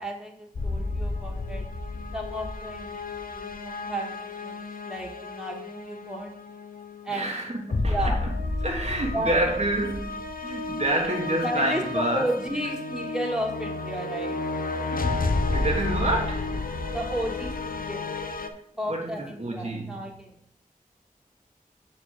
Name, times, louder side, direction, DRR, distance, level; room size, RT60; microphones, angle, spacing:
voice 1, 0.0-1.6 2.1-6.3 7.0-7.4 7.9-8.2 9.1-9.3 10.5-10.6 11.4-14.4 16.9-18.1 18.8-20.3, right 1 dB, 5° right, 1.8 m, -33 dB
sound 1, 0.6-18.5, left 3 dB, 75° left, 0.8 m, -31 dB
voice 2, 7.1-8.3 8.6-12.3 14.9-16.5 18.5-18.6 18.9-20.0, right 1 dB, 50° right, 1.5 m, -28 dB
7.4 x 4.5 x 6.5 m
wide cardioid pair, 65°, 15 cm